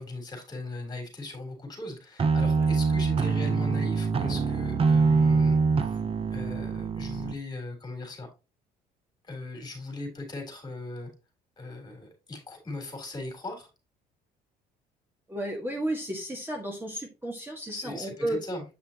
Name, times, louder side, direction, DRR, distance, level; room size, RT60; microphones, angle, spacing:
voice 1, 0.0-6.0 6.3-8.3 9.2-11.1 11.6-13.7 17.7-18.6, left 2 dB, 25° left, 3 dB, 3.7 m, -38 dB
sound 1, 2.2-7.3, right 4 dB, 35° right, 0.9 m, -24 dB
voice 2, 15.3-18.4, right 1 dB, 10° right, 1 dB, 1.8 m, -33 dB
8.7 x 5.5 x 3.0 m, 0.29 s
cardioid pair, 110°, 17 cm